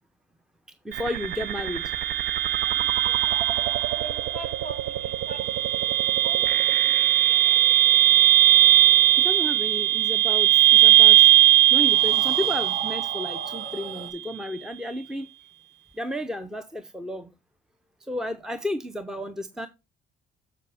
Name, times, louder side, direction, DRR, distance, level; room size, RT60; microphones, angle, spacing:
voice 1, 0.8-1.9 9.1-11.3 11.7-15.3 15.9-17.3 18.0-19.7, left 1 dB, 5° right, 0.6 m, -32 dB
sound 1, 0.9-13.9, right 13 dB, 85° right, 0.6 m, -20 dB
voice 2, 2.6-5.9 6.2-7.6, right 1 dB, 45° right, 5.0 m, -44 dB
sound 2, 5.1-10.7 11.8-14.1, right 3 dB, 60° right, 2.2 m, -42 dB
7.6 x 6.9 x 3.4 m
cardioid pair, 110°, 17 cm